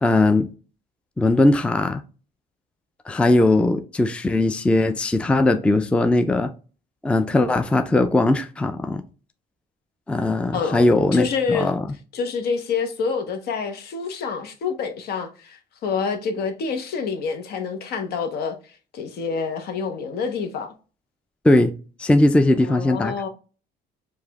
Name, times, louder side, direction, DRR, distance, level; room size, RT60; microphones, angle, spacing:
voice 1, 0.0-0.5 1.2-2.0 3.1-6.5 7.0-9.0 10.1-11.9 21.4-21.7 22.0-23.1, left 2 dB, 5° left, 0.4 m, -19 dB
voice 2, 10.5-10.8 11.1-11.7 12.1-18.6 18.9-20.7 22.6-23.3, left 5 dB, 70° left, 1.1 m, -27 dB
4.8 x 2.6 x 3.5 m
cardioid pair, 110°, 17 cm